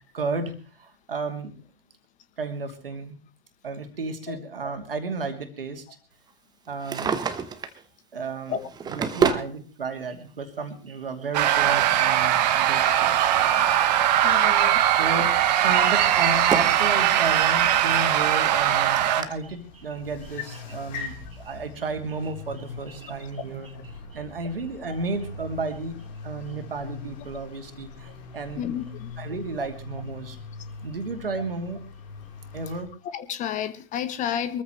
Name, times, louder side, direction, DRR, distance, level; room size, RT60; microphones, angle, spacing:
voice 1, 0.1-1.5 2.4-3.2 3.6-5.8 6.7-7.3 8.1-8.6 8.9-13.4 14.9-25.9 26.2-28.6 29.2-30.4 30.8-31.8 32.5-32.9, right 4 dB, 70° right, 6 dB, 2.6 m, -33 dB
Drawer open or close, 6.7-7.8 8.5-9.5 10.6-10.7 12.5-14.0 14.3-14.7 15.2-16.9 17.3-17.4 18.1-18.2 18.4-18.5 19.2-19.3, right 6 dB, 15° right, 1.0 m, -29 dB
sound 1, 11.3-19.2, right 11 dB, 45° right, 1.4 m, -20 dB
voice 2, 14.2-14.8 28.6-29.1 33.1-34.6, left 9 dB, 25° left, 13 dB, 1.0 m, -31 dB
sound 2, 15.2-32.8, left 3 dB, 45° left, 3.9 m, -42 dB
23.5 x 14.0 x 3.2 m, 0.35 s
figure-of-eight pair, 100°, 29 cm